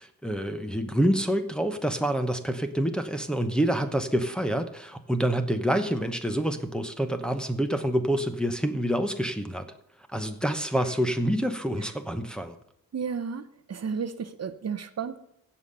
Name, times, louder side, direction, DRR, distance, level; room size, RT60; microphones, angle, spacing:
voice 1, 0.0-9.7 10.1-12.6, right 1 dB, ahead, 5 dB, 1.0 m, -27 dB
voice 2, 12.9-15.2, right 6 dB, 50° right, 11 dB, 0.8 m, -33 dB
16.0 x 5.7 x 6.7 m, 0.75 s
wide cardioid pair, 135°, 34 cm